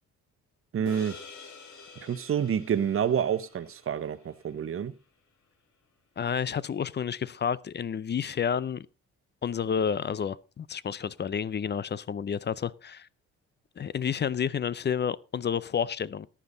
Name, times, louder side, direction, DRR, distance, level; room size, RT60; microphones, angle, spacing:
voice 1, 0.7-1.2 2.0-4.9, right 8 dB, 45° right, 1.0 m, -28 dB
sound 1, 0.9-5.4, left 4 dB, 70° left, 3.1 m, -49 dB
voice 2, 6.2-8.9 9.4-13.1 13.8-16.3, left 7 dB, 35° left, 0.6 m, -30 dB
14.5 x 10.0 x 3.9 m
cardioid pair, 90°, 30 cm